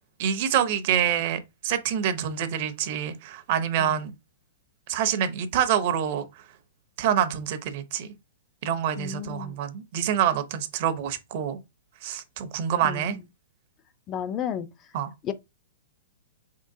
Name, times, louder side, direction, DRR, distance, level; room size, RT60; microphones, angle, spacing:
voice 1, 0.2-4.1 4.9-6.3 7.0-8.1 8.6-11.6 12.0-13.2 14.9-15.1, right 9 dB, 45° right, 0.6 m, -26 dB
voice 2, 9.0-9.6 12.8-13.2 14.1-14.7 15.2-15.3, left 9 dB, 25° left, 0.3 m, -32 dB
4.1 x 3.7 x 2.6 m
hypercardioid pair, 155°, 0 cm